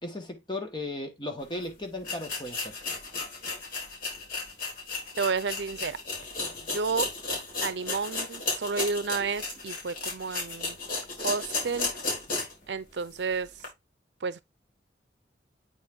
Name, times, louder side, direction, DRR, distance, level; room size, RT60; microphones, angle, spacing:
voice 1, 0.0-2.8, left 2 dB, 25° left, 1.4 m, -36 dB
sound 1, 1.5-1.6 2.0-12.6 13.0-13.1 13.6-13.7, left 3 dB, 55° left, 3.6 m, -34 dB
voice 2, 5.2-6.0 6.7-7.1 7.6-10.8 11.2-11.9 12.7-13.5 14.2-14.4, right 5 dB, 75° right, 0.6 m, -31 dB
8.4 x 3.9 x 3.6 m
head